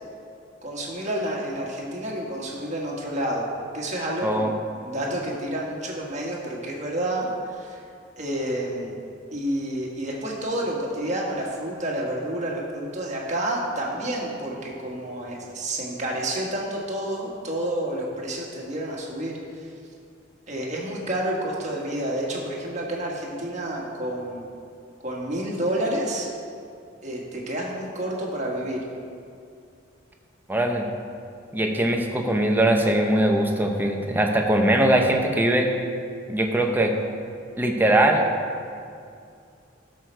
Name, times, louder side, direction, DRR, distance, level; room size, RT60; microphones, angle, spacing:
voice 1, 0.6-3.5 3.7-4.6 4.8-7.3 7.5-7.8 8.2-9.0 9.3-19.7 20.5-24.5 25.0-26.3 27.0-28.8, right 1 dB, 40° right, -2 dB, 1.6 m, -29 dB
voice 2, 30.5-30.9 31.5-35.7 36.3-36.9 37.6-38.3, right 1 dB, 10° right, 2 dB, 0.8 m, -21 dB
12.0 x 6.5 x 4.6 m, 2.4 s
head